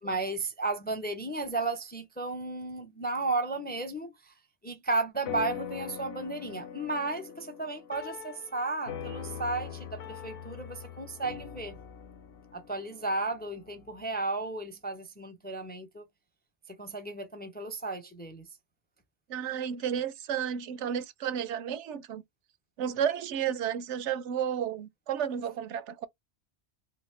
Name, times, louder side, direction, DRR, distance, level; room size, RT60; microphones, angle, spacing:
voice 1, 0.0-4.3 4.6-11.7 12.5-16.0 16.8-18.5, right 3 dB, 15° left, 0.4 m, -34 dB
sound 1, 5.3-14.0, left 9 dB, 65° left, 0.9 m, -42 dB
voice 2, 19.3-22.2 22.8-26.1, right 8 dB, 90° right, 0.9 m, -32 dB
3.1 x 2.8 x 3.1 m
omnidirectional pair, 1.2 m